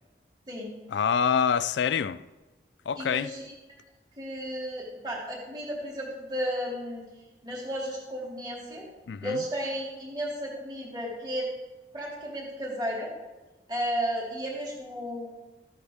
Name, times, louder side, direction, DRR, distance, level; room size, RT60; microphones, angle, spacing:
voice 1, 0.9-2.2 2.9-3.3 9.1-9.4, left 7 dB, 80° left, 0.4 m, -26 dB
voice 2, 3.0-3.4 4.2-7.1 7.4-8.8 9.2-11.5 11.9-13.1 13.7-15.3, equal, 25° right, 2.5 m, -33 dB
14.5 x 11.5 x 3.5 m
head